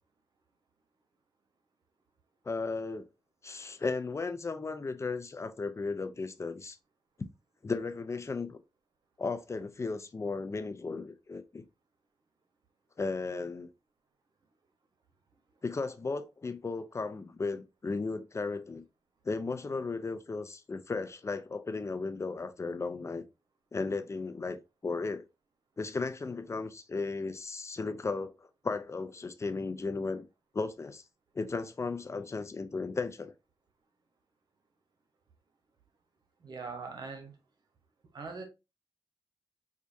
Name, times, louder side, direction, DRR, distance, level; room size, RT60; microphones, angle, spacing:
voice 1, 2.4-3.1 3.4-6.8 7.6-8.6 9.2-11.6 13.0-13.7 15.6-18.8 19.2-23.2 23.7-25.3 25.8-30.3 30.5-31.0 31.3-33.3, left 4 dB, 40° left, 0.6 m, -35 dB
voice 2, 36.4-37.3 38.1-38.5, right 4 dB, 65° right, 1.1 m, -41 dB
4.5 x 2.4 x 2.6 m
cardioid pair, 55°, 8 cm